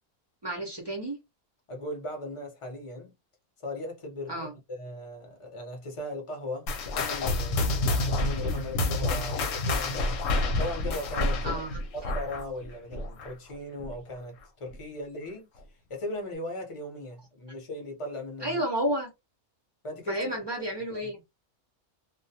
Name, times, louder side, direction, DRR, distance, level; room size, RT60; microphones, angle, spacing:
voice 1, 0.4-1.2 4.3-4.5 11.4-11.8 18.4-19.1 20.1-21.2, equal, 40° right, 0.3 m, -31 dB
voice 2, 1.7-3.1 3.6-10.2 10.5-11.6 11.9-15.5 15.9-18.6 19.8-20.3 20.6-20.7 21.0-21.1, left 1 dB, 40° left, 0.4 m, -38 dB
sound 1, 6.7-13.5 13.8-14.1 14.7-14.8 15.6-15.7, left 2 dB, 70° left, 0.9 m, -28 dB
2.3 x 2.1 x 2.6 m
omnidirectional pair, 1.5 m